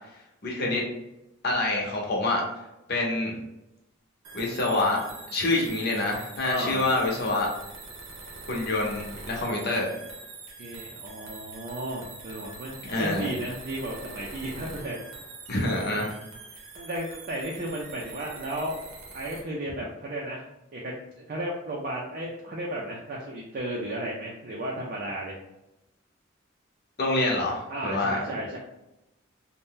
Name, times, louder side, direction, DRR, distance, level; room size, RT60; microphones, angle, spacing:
voice 1, 0.4-0.8 1.4-2.4 2.9-3.4 4.3-5.0 5.3-7.5 8.5-10.0 12.8-13.3 15.5-16.2 27.0-28.2, left 2 dB, 55° left, -1 dB, 0.8 m, -26 dB
sound 1, 4.2-19.4, right 3 dB, 80° right, 0.7 m, -44 dB
voice 2, 6.4-6.9 10.6-15.0 16.8-18.8 19.1-20.4 20.7-25.4 27.7-28.6, right 1 dB, 45° right, -3 dB, 0.4 m, -34 dB
2.6 x 2.1 x 3.6 m, 0.90 s
head